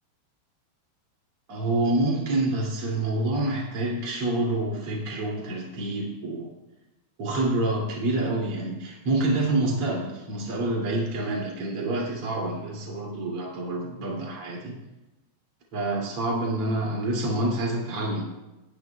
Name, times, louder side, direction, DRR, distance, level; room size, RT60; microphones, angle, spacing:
voice 1, 1.5-6.5 7.2-14.8 15.7-18.3, right 2 dB, 35° right, -2 dB, 3.2 m, -27 dB
19.0 x 10.5 x 2.4 m, 1.0 s
omnidirectional pair, 5.1 m